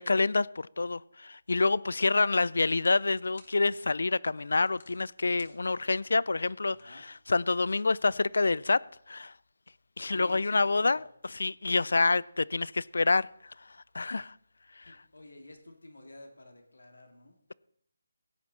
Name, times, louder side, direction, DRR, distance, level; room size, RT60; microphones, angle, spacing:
voice 1, 0.0-6.8 7.3-8.8 9.1-9.3 10.0-11.0 11.4-13.3 13.9-14.3, left 3 dB, 75° left, 0.4 m, -27 dB
sound 1, 1.6-7.7, left 4 dB, 55° left, 3.0 m, -63 dB
voice 2, 2.0-2.4 6.7-7.1 10.0-11.0 14.8-17.4, left 1 dB, 90° left, 2.8 m, -51 dB
16.5 x 9.6 x 4.2 m
figure-of-eight pair, 165°, 0 cm